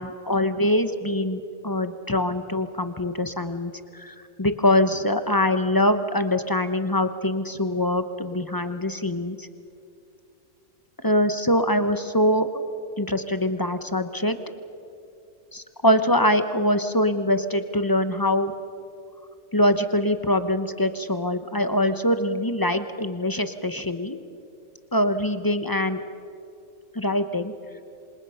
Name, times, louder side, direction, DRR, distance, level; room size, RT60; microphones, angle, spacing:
voice 1, 0.0-9.5 11.0-12.6 13.0-14.4 15.5-18.5 19.5-24.2 24.9-26.0 26.9-27.5, left 1 dB, 20° left, 10 dB, 0.8 m, -23 dB
27.5 x 26.0 x 5.7 m, 2.7 s
omnidirectional pair, 1.4 m